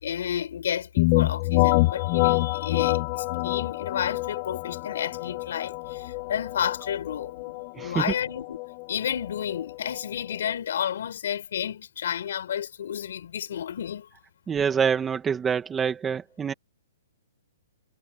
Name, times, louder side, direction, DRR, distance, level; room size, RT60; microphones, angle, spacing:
voice 1, 0.0-8.6 8.9-14.1, left 9 dB, 65° left, 6.9 m, -31 dB
sound 1, 1.0-10.5, left 22 dB, 35° left, 1.2 m, -27 dB
voice 2, 7.7-8.1 14.5-16.5, right 7 dB, 10° right, 1.9 m, -26 dB
hypercardioid pair, 150°, 0 cm